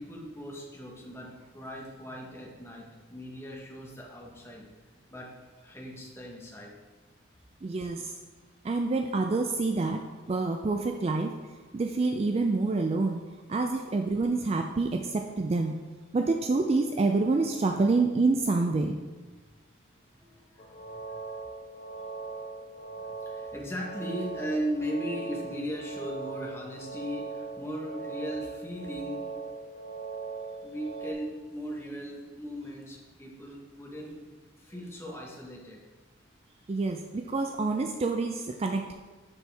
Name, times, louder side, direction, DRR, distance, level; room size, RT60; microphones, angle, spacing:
voice 1, 0.0-4.7 4.9-5.4 5.6-6.7 20.2-21.4 22.2-22.4 22.9-29.3 30.6-34.2 34.6-35.8, equal, 15° left, -2 dB, 1.0 m, -38 dB
voice 2, 7.6-8.1 8.6-10.0 10.3-11.3 11.7-13.2 13.5-15.7 16.1-19.0 36.7-38.9, right 3 dB, 30° right, 5 dB, 0.3 m, -27 dB
sound 1, 20.6-31.1, right 4 dB, 35° left, 0.5 m, -40 dB
7.0 x 5.9 x 3.4 m, 1.3 s
head